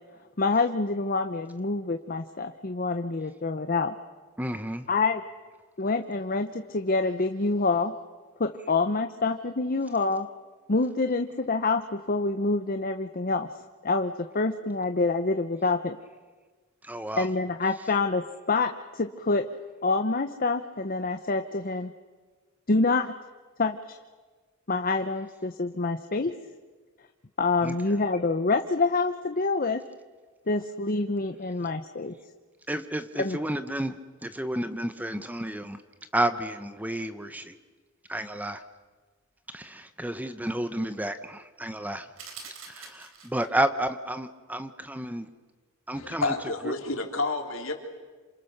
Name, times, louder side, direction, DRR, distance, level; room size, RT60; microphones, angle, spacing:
voice 1, 0.4-3.9 4.9-5.2 5.8-7.9 8.4-10.3 10.7-13.5 13.8-16.0 17.2-19.4 19.8-21.9 22.7-23.1 23.6-24.0 24.7-26.3 27.4-29.8 30.5-32.1 33.2-33.4, left 3 dB, 45° left, 7 dB, 0.9 m, -26 dB
voice 2, 4.4-4.9 16.8-17.3 27.6-27.8 32.7-35.8 36.1-37.6 38.1-38.6 39.5-42.1 42.7-45.3 45.9-46.3 46.7-46.8, right 1 dB, 10° right, 10 dB, 0.9 m, -31 dB
sound 1, 42.2-43.6, right 5 dB, 75° right, 3.9 m, -45 dB
voice 3, 45.9-47.7, left 3 dB, 70° left, 3 dB, 3.4 m, -29 dB
28.0 x 26.5 x 6.7 m, 1.4 s
head